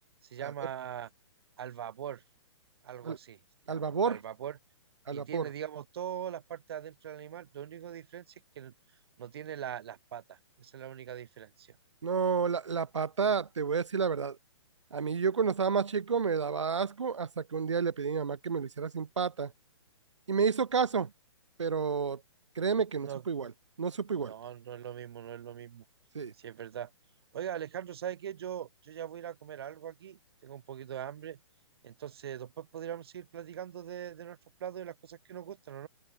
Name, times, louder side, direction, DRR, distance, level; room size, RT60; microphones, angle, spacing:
voice 1, 0.2-1.1 1.6-2.2 2.8-3.4 3.7-4.6 5.1-8.7 9.2-11.8 23.0-23.2 24.2-25.8 26.3-26.9 27.3-31.4 31.8-35.9, right 9 dB, 55° right, 2.6 m, -41 dB
voice 2, 3.7-4.2 5.1-5.5 12.0-14.4 14.9-19.5 20.3-21.1 21.6-22.2 22.6-23.5 23.8-24.3 26.1-26.3, right 6 dB, 75° right, 1.0 m, -30 dB
open air
figure-of-eight pair, 125°, 16 cm